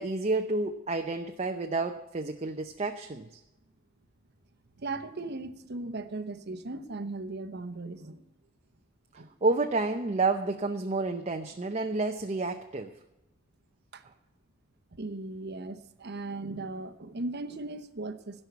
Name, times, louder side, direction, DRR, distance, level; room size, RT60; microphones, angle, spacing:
voice 1, 0.0-3.4 9.4-12.9, right 3 dB, 30° right, 5 dB, 0.6 m, -30 dB
voice 2, 4.8-8.2 9.1-9.3 13.9-14.0 14.9-18.4, right 2 dB, 50° right, 10 dB, 0.9 m, -37 dB
16.5 x 5.5 x 8.1 m, 0.92 s
head